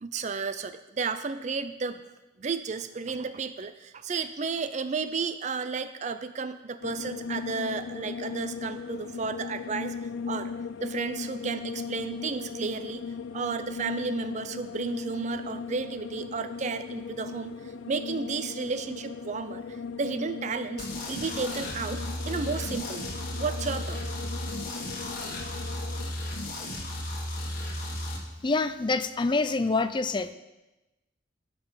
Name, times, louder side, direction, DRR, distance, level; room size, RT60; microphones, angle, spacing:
voice 1, 0.0-2.0 2.4-9.9 10.3-10.5 10.8-13.0 13.3-24.0, right 4 dB, 40° right, 11 dB, 0.4 m, -33 dB
sound 1, 6.8-26.1, left 5 dB, 80° left, 0.4 m, -38 dB
sound 2, 20.8-28.2, left 1 dB, 50° left, 1.8 m, -34 dB
voice 2, 28.4-30.3, left 3 dB, 25° left, 12 dB, 0.4 m, -26 dB
11.0 x 6.2 x 5.6 m, 1.0 s
head